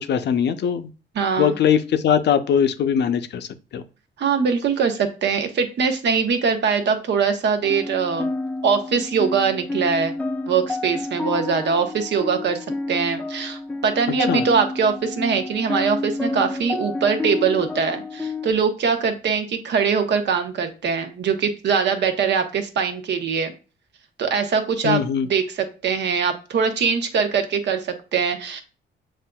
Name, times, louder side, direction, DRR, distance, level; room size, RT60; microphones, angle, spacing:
voice 1, 0.1-0.9 1.4-3.5 3.7-3.8 14.3-14.4 24.8-25.3, left 8 dB, 60° left, 9 dB, 0.6 m, -20 dB
voice 2, 1.1-1.5 4.2-8.3 8.6-10.2 10.5-23.5 24.2-28.6, right 6 dB, 60° right, 7 dB, 0.9 m, -22 dB
sound 1, 7.6-18.5, left 3 dB, 5° left, 0.3 m, -29 dB
7.3 x 2.5 x 2.2 m, 0.34 s
cardioid pair, 90°, 20 cm